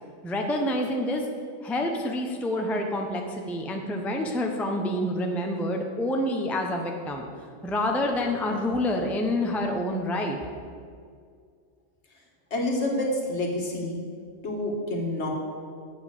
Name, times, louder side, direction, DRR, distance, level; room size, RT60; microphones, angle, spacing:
voice 1, 0.2-1.3 1.6-7.3 7.6-10.4, left 1 dB, ahead, 2 dB, 0.6 m, -27 dB
voice 2, 12.5-14.0 14.4-15.3, left 1 dB, 60° left, 0 dB, 1.8 m, -28 dB
7.8 x 6.6 x 7.2 m, 2.1 s
omnidirectional pair, 1.3 m